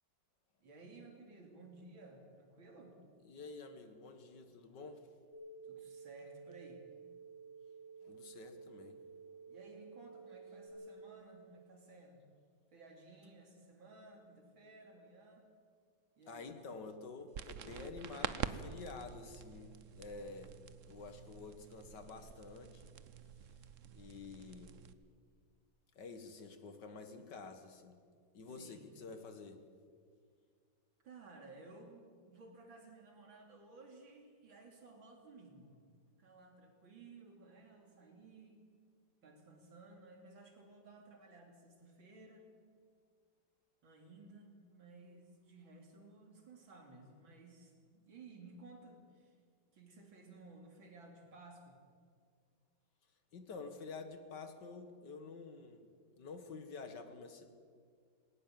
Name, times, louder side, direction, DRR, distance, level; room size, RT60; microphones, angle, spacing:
voice 1, 0.6-3.0 5.6-6.9 9.5-12.2 12.7-15.5 16.2-16.5 28.6-28.9 31.0-38.6 39.2-42.5 43.8-49.4 49.7-51.8, right 3 dB, 85° right, 2 dB, 3.8 m, -57 dB
voice 2, 3.2-5.1 8.0-9.0 16.3-20.6 20.9-22.9 23.9-24.8 26.0-28.0 28.3-29.6 53.3-55.9 56.2-57.5, left 4 dB, 65° left, 8 dB, 2.2 m, -49 dB
sound 1, 5.3-10.7, right 5 dB, 90° left, 7.5 m, -53 dB
sound 2, 17.3-24.9, right 8 dB, 55° right, 0.9 m, -47 dB
19.5 x 18.5 x 7.6 m, 2.1 s
omnidirectional pair, 2.1 m